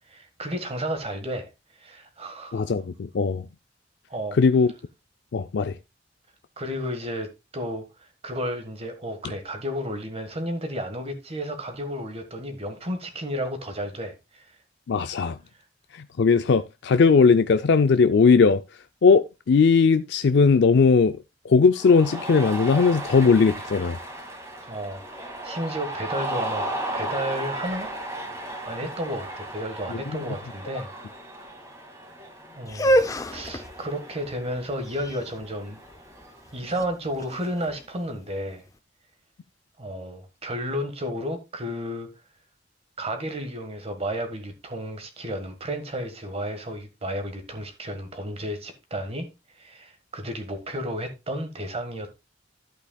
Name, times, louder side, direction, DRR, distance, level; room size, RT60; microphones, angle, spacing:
voice 1, 0.1-1.5 1.8-2.7 4.1-4.4 6.6-14.6 24.6-26.6 26.9-28.0 28.6-30.9 32.5-33.0 33.3-35.8 36.5-38.7 39.8-42.1 43.0-49.3 49.6-52.2, equal, 35° right, 1.5 m, -32 dB
voice 2, 2.5-3.5 4.3-4.7 5.3-5.8 14.9-15.4 15.9-21.2 21.4-24.0 29.9-30.0, left 5 dB, 65° left, 0.4 m, -19 dB
Cheering, 21.8-36.6, right 1 dB, 15° right, 2.2 m, -36 dB
sound 1, 32.6-38.6, equal, 20° left, 0.6 m, -28 dB
11.5 x 8.3 x 2.3 m
head